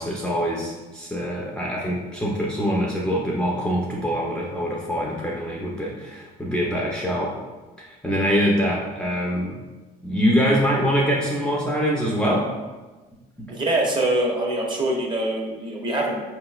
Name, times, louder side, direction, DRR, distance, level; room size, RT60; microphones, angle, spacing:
voice 1, 0.0-7.3 7.8-9.6 10.0-12.5 13.4-13.5, equal, 5° left, -4 dB, 0.5 m, -24 dB
voice 2, 13.5-16.2, right 1 dB, 25° right, -1 dB, 0.9 m, -24 dB
5.0 x 3.0 x 2.4 m, 1.2 s
cardioid pair, 110°, 17 cm